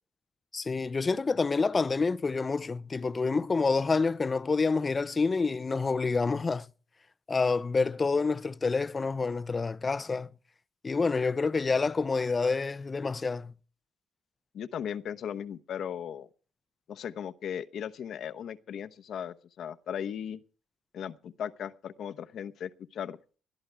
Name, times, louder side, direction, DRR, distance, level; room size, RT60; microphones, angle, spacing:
voice 1, 0.5-6.7 7.3-10.3 10.8-13.5, left 4 dB, 30° left, 0.6 m, -28 dB
voice 2, 14.5-16.3 16.9-20.4 20.9-23.2, left 8 dB, 70° left, 1.0 m, -37 dB
21.0 x 13.0 x 3.5 m
cardioid pair, 90°, 0 cm